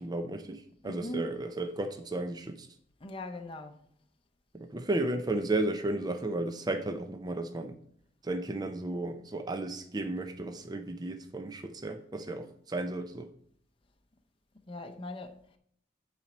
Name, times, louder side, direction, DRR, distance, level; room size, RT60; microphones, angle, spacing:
voice 1, 0.0-2.7 4.5-7.8 8.2-13.3, right 2 dB, 20° right, 0.5 m, -34 dB
voice 2, 0.8-1.4 3.0-3.8 14.7-15.6, left 1 dB, 30° left, 0.7 m, -40 dB
8.9 x 4.2 x 6.0 m
head